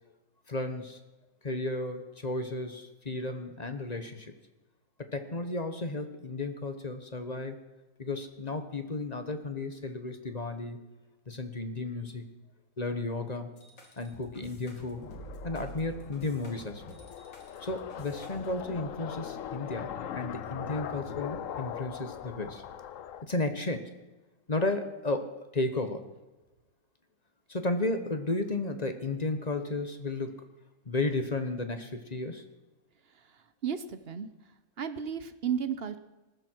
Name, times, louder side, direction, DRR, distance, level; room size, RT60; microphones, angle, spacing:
voice 1, 0.5-1.0 1.4-4.3 5.0-7.6 8.0-10.8 11.3-12.3 12.8-13.5 14.0-15.1 15.4-16.9 17.6-22.6 23.2-24.0 24.5-26.0 27.5-30.4 30.8-32.4, left 2 dB, 25° left, 8 dB, 1.1 m, -33 dB
sound 1, 13.6-18.7, equal, 80° left, 3.5 m, -48 dB
sound 2, 15.0-23.2, left 9 dB, 60° left, 0.9 m, -41 dB
voice 2, 33.1-34.3 34.8-36.0, right 8 dB, 50° right, 11 dB, 0.7 m, -34 dB
19.5 x 14.5 x 4.6 m, 1.1 s
omnidirectional pair, 2.0 m